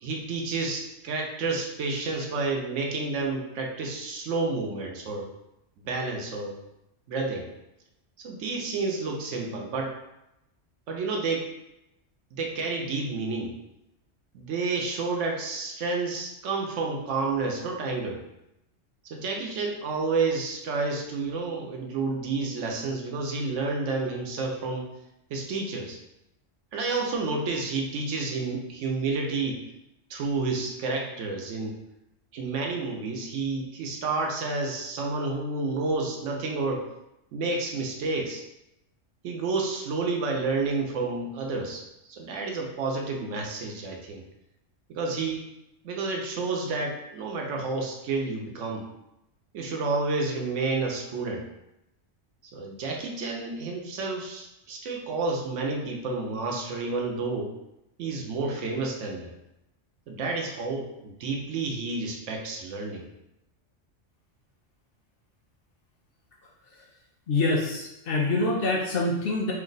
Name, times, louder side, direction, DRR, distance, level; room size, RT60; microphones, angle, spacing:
voice 1, 0.0-5.2 5.8-6.5 7.1-7.5 8.2-9.9 10.9-11.5 12.3-13.6 14.3-18.2 19.0-24.9 25.3-26.0 26.7-29.6 30.1-31.8 32.3-36.9 37.3-38.4 39.2-41.8 42.1-44.2 44.9-45.4 45.8-48.9 49.5-51.5 52.5-57.5 58.0-59.3 60.1-63.1, right 3 dB, 75° right, 1 dB, 1.0 m, -30 dB
voice 2, 67.3-69.5, left 2 dB, 60° left, -2 dB, 0.6 m, -25 dB
2.9 x 2.2 x 3.9 m, 0.87 s
omnidirectional pair, 1.3 m